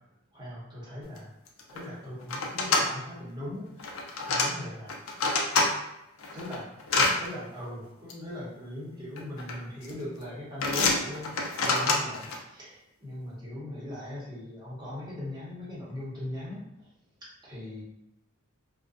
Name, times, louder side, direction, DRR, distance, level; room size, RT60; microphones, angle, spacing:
voice 1, 0.3-1.3 1.7-5.0 6.3-16.6 17.4-17.8, left 1 dB, 20° right, -8 dB, 0.8 m, -40 dB
sound 1, 1.2-1.3 1.5-1.8 2.3-2.8 3.8-4.5 4.9-5.7 6.2-7.1 8.1-8.2 9.2-9.5 9.8-10.2 10.6-12.4, left 3 dB, 70° left, 0.4 m, -26 dB
2.4 x 2.1 x 2.4 m, 0.86 s
head